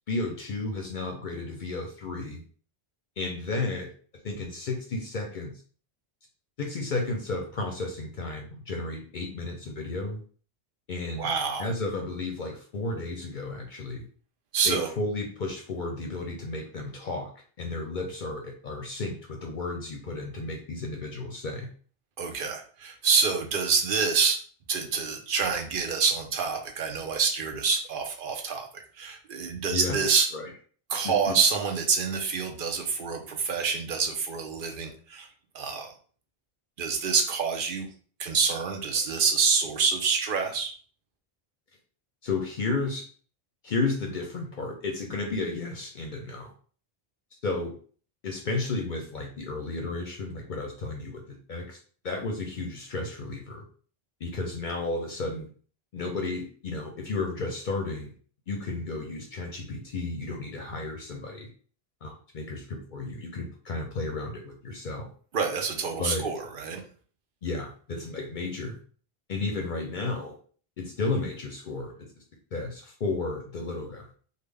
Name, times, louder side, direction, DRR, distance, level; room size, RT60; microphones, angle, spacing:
voice 1, 0.1-2.4 3.2-3.9 4.2-5.5 6.6-10.2 10.9-11.3 11.6-14.0 14.6-17.3 17.6-21.7 29.7-30.0 30.3-30.5 31.0-31.4 42.2-43.0 43.6-46.5 47.4-47.7 48.2-51.8 52.0-53.7 54.2-55.5 55.9-58.1 58.5-61.5 62.0-65.1 66.0-66.2 67.4-68.8 69.3-70.3 70.8-72.1 72.5-74.1, left 3 dB, 55° left, 2 dB, 0.7 m, -33 dB
voice 2, 11.2-11.7 14.5-14.9 22.2-24.4 24.7-30.3 30.9-35.3 35.5-35.9 36.8-37.9 38.2-40.7 65.3-66.8, right 5 dB, 60° right, 4 dB, 0.8 m, -27 dB
3.5 x 2.2 x 3.3 m, 0.44 s
omnidirectional pair, 1.0 m